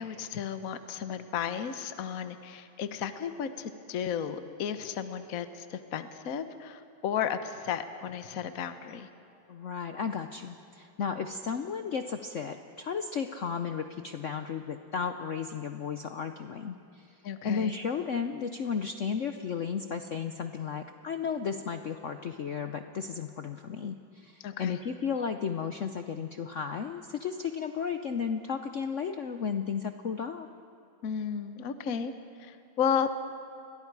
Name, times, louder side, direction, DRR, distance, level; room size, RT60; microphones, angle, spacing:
voice 1, 0.0-9.1 17.2-17.7 24.4-24.8 31.0-32.1 32.4-33.1, left 8 dB, 50° left, 10 dB, 1.2 m, -33 dB
voice 2, 9.5-17.2 17.4-30.5, left 6 dB, 80° left, 7 dB, 0.6 m, -34 dB
30.0 x 23.0 x 4.7 m, 2.8 s
omnidirectional pair, 2.3 m